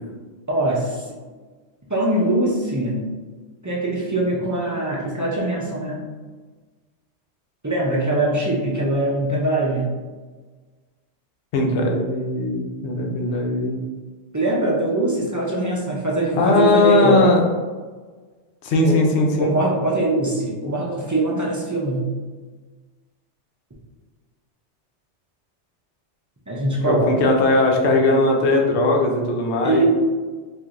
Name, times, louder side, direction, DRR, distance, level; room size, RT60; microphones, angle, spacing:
voice 1, 0.5-1.2 1.9-3.1 3.6-6.0 7.6-9.9 14.3-17.2 18.8-19.0 19.4-22.1 26.5-27.1 29.6-29.8, right 1 dB, 25° right, -5 dB, 0.4 m, -22 dB
voice 2, 11.5-13.8 16.4-17.4 18.6-19.6 26.8-29.8, left 2 dB, 70° left, 1 dB, 0.9 m, -19 dB
4.5 x 2.6 x 2.5 m, 1.4 s
omnidirectional pair, 1.2 m